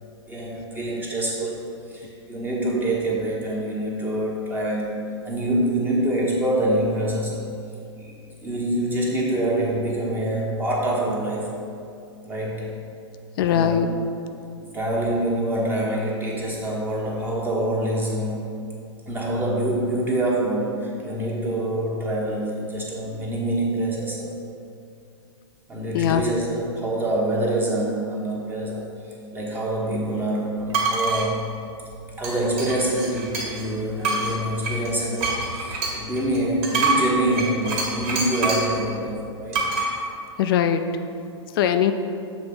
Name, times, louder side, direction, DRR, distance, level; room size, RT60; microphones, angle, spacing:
voice 1, 0.3-5.0 5.2-7.5 8.0-11.6 12.2-12.8 13.5-13.8 14.6-18.4 19.1-24.3 25.7-31.6 32.2-39.6, right 1 dB, 10° right, -4 dB, 1.0 m, -26 dB
voice 2, 13.4-13.9 25.9-26.2 40.4-40.8 41.6-41.9, left 9 dB, 50° left, 8 dB, 0.4 m, -20 dB
sound 1, 30.7-31.3 32.2-33.7 34.0-38.7 39.5-39.9, right 3 dB, 35° right, 1.4 m, -26 dB
7.2 x 3.3 x 5.3 m, 2.5 s
hypercardioid pair, 120°, 16 cm